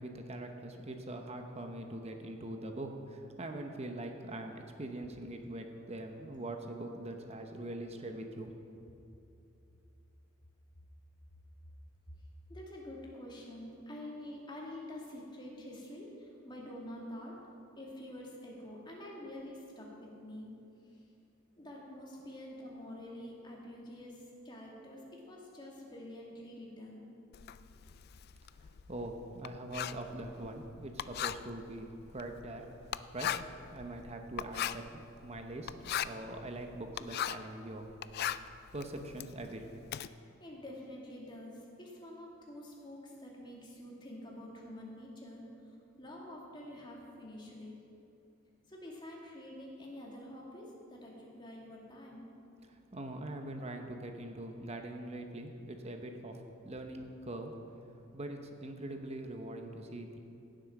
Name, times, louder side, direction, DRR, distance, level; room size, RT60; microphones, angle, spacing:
voice 1, 0.0-8.9 27.7-27.8 28.5-32.7 33.1-33.4 33.7-37.9 38.7-39.9 52.6-57.5 58.1-60.2, right 1 dB, 30° right, 4 dB, 0.9 m, -43 dB
voice 2, 12.5-17.4 17.8-20.5 20.9-21.0 21.5-27.1 40.1-47.8 48.7-52.2, left 1 dB, 20° left, -3 dB, 2.3 m, -47 dB
Writing, 27.3-37.5 37.9-40.1, left 10 dB, 50° left, 0.3 m, -39 dB
16.5 x 7.7 x 6.0 m, 2.8 s
head